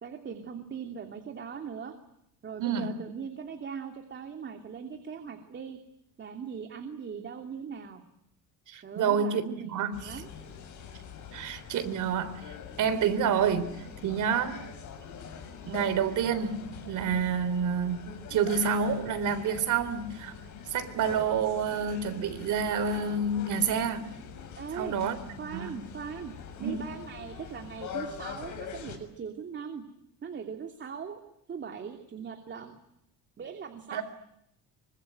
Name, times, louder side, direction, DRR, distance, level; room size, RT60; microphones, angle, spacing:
voice 1, 0.0-1.9 2.4-5.8 6.2-8.0 8.8-10.3 24.6-25.0 25.4-29.8 30.2-31.2 31.5-32.8 33.4-34.0, right 6 dB, 30° right, 6 dB, 2.9 m, -40 dB
voice 2, 2.6-3.0 8.7-9.4 9.7-10.2 11.3-13.7 14.0-14.6 15.7-20.4 20.7-24.2 24.7-25.2 25.5-25.8 26.6-26.8 33.9-34.0, right 6 dB, 55° right, 11 dB, 3.7 m, -28 dB
sound 1, 9.9-29.0, left 7 dB, 55° left, 6.9 m, -43 dB
26.0 x 25.0 x 9.2 m, 0.77 s
cardioid pair, 145°, 36 cm